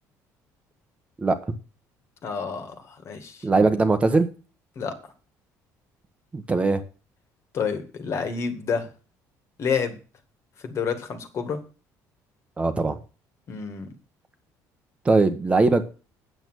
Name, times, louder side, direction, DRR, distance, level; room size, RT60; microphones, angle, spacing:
voice 1, 2.2-3.4 4.8-4.9 7.5-8.9 9.6-10.0 10.6-11.6 13.5-13.9, left 6 dB, 45° left, 8 dB, 2.0 m, -29 dB
voice 2, 3.4-4.3 6.3-6.8 12.6-13.0 15.0-15.8, right 3 dB, 20° right, 8 dB, 1.2 m, -20 dB
9.0 x 7.8 x 6.3 m, 0.35 s
cardioid pair, 135°, 7 cm